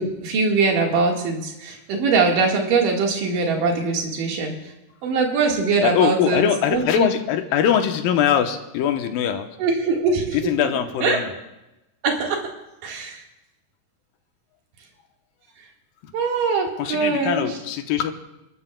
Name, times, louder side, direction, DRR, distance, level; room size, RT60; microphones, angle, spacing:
voice 1, 0.0-4.5 5.0-6.4 6.7-7.1 9.6-10.7 11.0-11.2 12.0-12.4 12.8-13.2 16.1-17.5, right 4 dB, 70° right, 0 dB, 3.3 m, -22 dB
voice 2, 5.8-9.5 10.3-11.3 16.0-16.1 16.8-18.1, left 9 dB, 90° left, 6 dB, 2.6 m, -22 dB
29.5 x 13.5 x 2.3 m, 0.95 s
omnidirectional pair, 4.0 m